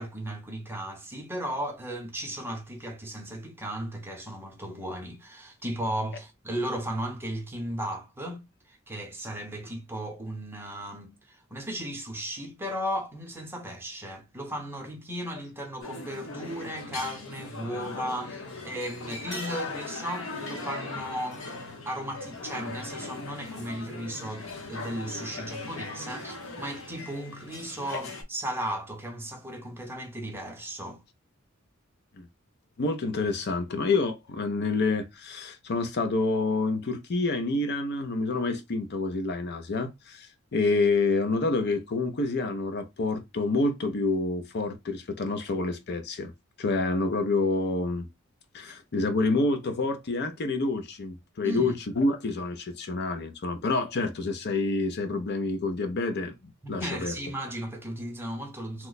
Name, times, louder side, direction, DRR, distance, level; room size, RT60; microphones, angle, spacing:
voice 1, 0.0-31.0 51.4-51.7 56.6-58.9, right 1 dB, 10° right, 0.7 m, -35 dB
sound 1, 15.8-28.2, left 3 dB, 70° left, 0.9 m, -39 dB
voice 2, 32.8-46.3 46.6-48.1 48.5-56.3 56.7-57.1, left 3 dB, 50° left, 0.5 m, -28 dB
3.0 x 2.1 x 4.0 m
head